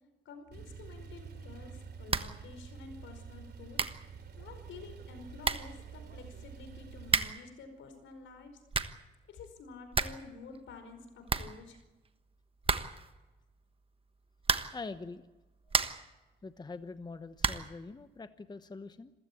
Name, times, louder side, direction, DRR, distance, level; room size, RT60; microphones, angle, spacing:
voice 1, 0.2-3.8 4.4-8.6 9.3-11.8, left 4 dB, 75° left, 8 dB, 5.0 m, -50 dB
Male speech man speaking / Car / Idling, 0.5-7.3, right 6 dB, 55° right, 3.3 m, -48 dB
sound 1, 2.1-2.4 2.7-2.8 3.4-3.5 3.7-4.1 5.0-5.1 5.4-5.8 7.0-7.5 8.4-9.1 9.4-9.5 9.7-10.3 10.5-10.6 10.9-11.0 11.3-12.1 12.6-13.1 14.4-14.9 15.4-16.1 17.4-17.8, right 4 dB, 30° right, 1.3 m, -32 dB
voice 2, 14.7-15.2 16.4-19.1, left 3 dB, 20° left, 11 dB, 1.0 m, -44 dB
27.0 x 15.5 x 8.6 m, 1.1 s
cardioid pair, 90°, 20 cm